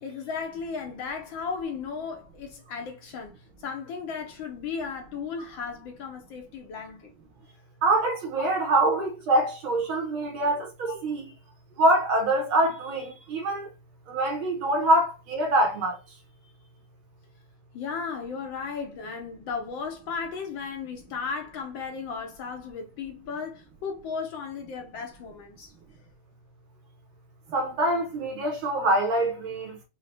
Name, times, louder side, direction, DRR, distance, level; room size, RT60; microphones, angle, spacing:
voice 1, 0.0-7.1 8.4-8.5 8.8-8.9 10.8-10.9 17.7-25.7, left 5 dB, 70° left, 1.3 m, -35 dB
voice 2, 7.8-11.3 11.8-13.7 14.1-16.0 27.5-29.8, right 1 dB, 70° right, 1.8 m, -24 dB
5.6 x 2.2 x 3.2 m
omnidirectional pair, 2.4 m